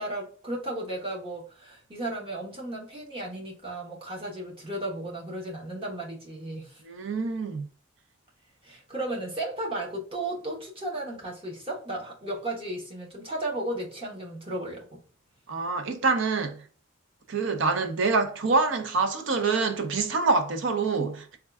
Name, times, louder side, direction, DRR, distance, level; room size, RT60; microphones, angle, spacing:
voice 1, 0.0-6.8 8.6-15.0, right 1 dB, 25° right, 0.9 m, -34 dB
voice 2, 6.9-7.7 15.5-16.6 17.3-21.4, right 4 dB, 65° right, 0.5 m, -26 dB
3.5 x 2.3 x 3.4 m
head